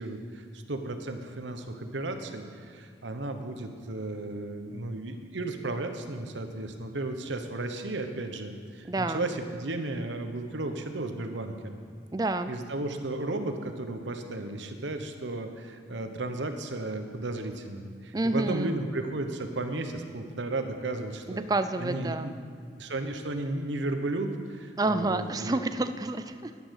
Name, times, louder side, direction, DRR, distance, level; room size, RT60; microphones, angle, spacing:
voice 1, 0.0-11.8 12.5-21.4 21.8-22.3 22.8-25.6, right 2 dB, 80° right, 6 dB, 1.1 m, -34 dB
voice 2, 8.8-9.3 12.1-12.5 18.1-18.7 21.3-22.3 24.8-26.6, right 2 dB, 20° right, 10 dB, 0.4 m, -29 dB
10.5 x 10.0 x 6.5 m, 2.2 s
head